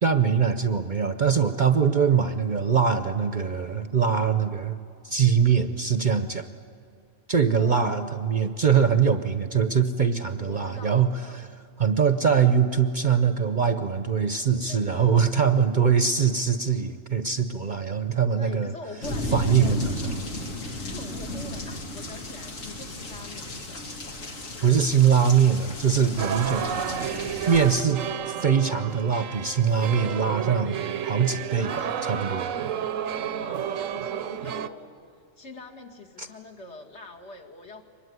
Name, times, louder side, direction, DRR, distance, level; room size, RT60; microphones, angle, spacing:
voice 1, 0.0-4.8 5.0-6.4 7.3-11.1 11.8-18.7 19.3-19.9 24.6-26.6 27.5-31.7 32.0-32.5 36.2-36.3, right 7 dB, 45° right, 10 dB, 0.8 m, -22 dB
voice 2, 7.5-8.3 10.5-11.4 14.6-15.2 18.4-19.8 20.8-23.8 26.6-27.2 31.6-32.1 32.7-34.9 35.4-37.8, left 3 dB, 60° left, 1 dB, 2.4 m, -43 dB
sound 1, 19.0-27.8, left 1 dB, 85° left, 2.7 m, -34 dB
sound 2, 26.2-34.7, right 9 dB, 85° right, 1.2 m, -31 dB
24.0 x 21.0 x 9.5 m, 2.2 s
omnidirectional pair, 1.3 m